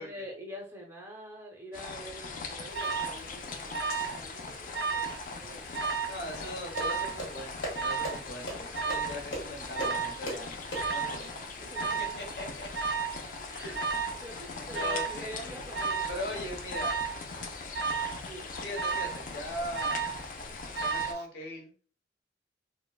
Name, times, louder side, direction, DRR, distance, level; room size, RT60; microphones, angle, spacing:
voice 1, 0.0-6.2 10.9-11.1 11.6-12.6 13.5-13.8 14.2-16.4 18.2-18.6, equal, 15° right, 1 dB, 0.5 m, -46 dB
sound 1, 1.7-21.1, left 3 dB, 45° left, 0.4 m, -41 dB
Alarm, 2.7-3.2 3.7-4.2 4.5-5.2 5.7-6.2 6.7-7.2 7.7-8.2 8.7-9.2 9.7-10.2 10.7-11.2 11.7-12.2 12.7-13.2 13.7-14.2 14.7-15.2 15.7-16.2 16.7-17.2 17.7-18.2 18.7-19.2 19.7-20.2 20.7-21.2, right 5 dB, 65° right, 0.4 m, -32 dB
voice 2, 6.1-10.6 10.9-11.3 12.2-12.7 13.6-13.8 14.7-15.6 16.1-16.9 18.6-20.1 20.8-21.8, left 1 dB, 65° left, 1 dB, 1.0 m, -40 dB
sound 2, 6.3-11.3, right 1 dB, 85° left, 1.4 m, -39 dB
4.1 x 2.0 x 2.3 m, 0.42 s
head